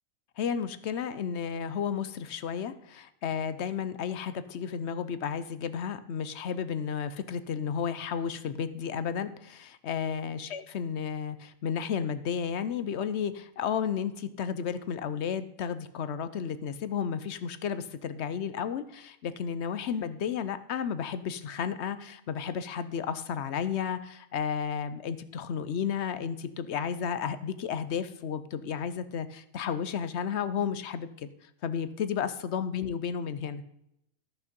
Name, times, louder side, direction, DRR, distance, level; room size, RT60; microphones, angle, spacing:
voice 1, 0.4-31.3 31.6-33.6, left 7 dB, 60° left, 13 dB, 0.9 m, -33 dB
13.5 x 5.7 x 5.3 m, 0.78 s
omnidirectional pair, 1.4 m